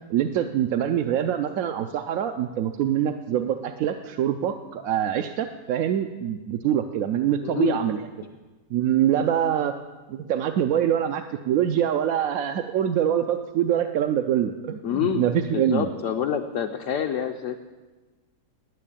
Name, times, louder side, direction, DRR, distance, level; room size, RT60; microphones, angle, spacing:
voice 1, 0.1-8.0 8.7-9.7 10.1-15.9, right 10 dB, 70° right, 5 dB, 0.9 m, -24 dB
voice 2, 7.4-7.8 14.8-15.2 15.5-17.6, left 8 dB, 65° left, 3 dB, 0.9 m, -27 dB
9.9 x 9.6 x 8.5 m, 1.3 s
omnidirectional pair, 1.7 m